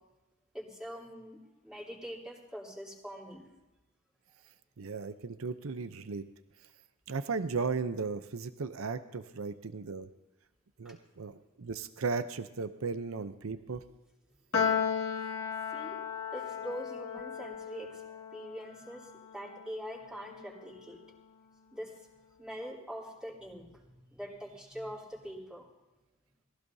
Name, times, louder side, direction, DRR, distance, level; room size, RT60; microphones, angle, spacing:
voice 1, 0.5-3.5 10.8-10.9 15.7-16.0 16.3-21.0 21.7-22.1 22.4-25.7, equal, 5° right, -5 dB, 3.3 m, -44 dB
voice 2, 4.8-6.3 7.1-10.1 10.8-13.8, right 4 dB, 75° right, 11 dB, 0.7 m, -36 dB
Piano, 14.5-21.0, left 7 dB, 85° left, 1.8 m, -36 dB
21.5 x 15.5 x 2.7 m, 1.1 s
head